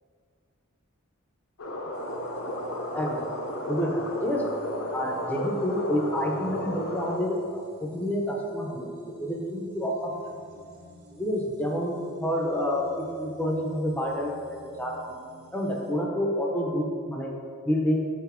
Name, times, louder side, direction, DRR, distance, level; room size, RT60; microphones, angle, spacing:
sound 1, 1.6-7.2, left 1 dB, 80° left, 0.8 m, -33 dB
sound 2, 1.9-15.9, equal, 75° right, 1.0 m, -52 dB
voice 1, 2.9-3.3 3.7-4.6 4.9-10.1 11.1-15.0 15.5-18.1, equal, 5° left, 0 dB, 0.5 m, -29 dB
6.1 x 4.1 x 4.3 m, 2.2 s
head